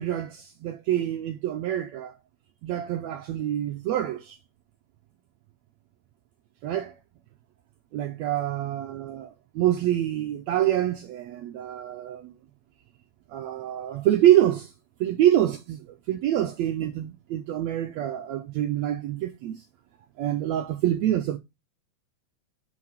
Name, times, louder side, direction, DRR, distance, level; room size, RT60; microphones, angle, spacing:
voice 1, 0.0-2.2 2.6-4.4 6.6-7.0 7.9-12.3 13.3-14.7 15.0-19.6 20.2-21.4, right 12 dB, 75° right, 1.6 m, -26 dB
6.1 x 4.8 x 5.6 m
omnidirectional pair, 3.8 m